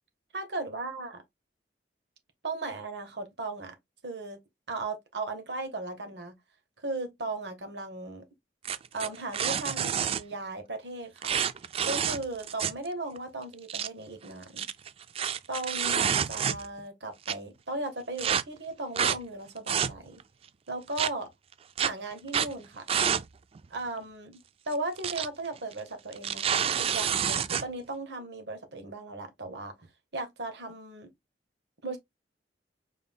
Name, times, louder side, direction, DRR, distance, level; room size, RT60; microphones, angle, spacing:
voice 1, 0.3-1.2 2.4-3.7 4.0-4.4 4.7-6.4 6.8-8.2 8.9-11.3 11.8-14.7 15.5-20.2 20.7-21.3 21.8-22.8 23.7-24.4 24.7-29.7 30.1-31.1 31.8-32.0, right 2 dB, 75° right, 1.5 m, -36 dB
sound 1, 8.6-10.2 11.2-12.9 13.2-13.3 13.5-13.9 14.4-16.8 17.2-17.3 18.2-18.4 19.0-19.2 19.6-20.2 21.0-21.1 21.8-21.9 22.3-22.5 22.9-23.2 23.5-23.6 24.7-25.3 25.6-25.7 26.1-27.6, right 8 dB, 35° right, 0.3 m, -28 dB
5.4 x 3.8 x 2.3 m
head